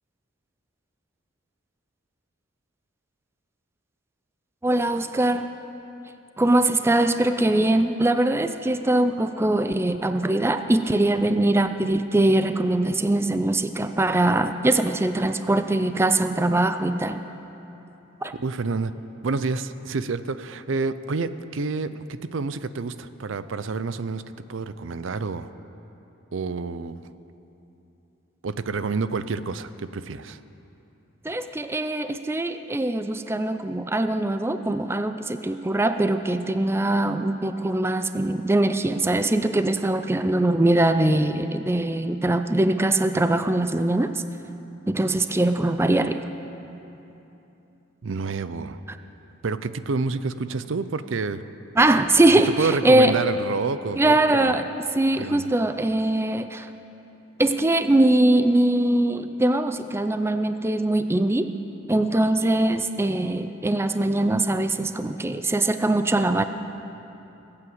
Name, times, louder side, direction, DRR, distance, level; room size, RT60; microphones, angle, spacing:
voice 1, 4.6-5.5 6.4-17.2 18.2-18.3 31.2-44.2 44.9-46.2 51.8-53.2 54.0-54.7 54.9-56.7 57.4-61.5 61.9-66.4, right 1 dB, 15° right, 9 dB, 0.4 m, -22 dB
voice 2, 18.4-19.0 19.2-24.2 24.5-25.5 26.3-27.0 28.4-30.4 48.0-48.8 49.4-51.5 52.6-54.6 55.2-55.5, right 4 dB, 70° right, 13 dB, 0.5 m, -28 dB
19.5 x 8.7 x 7.9 m, 2.9 s
head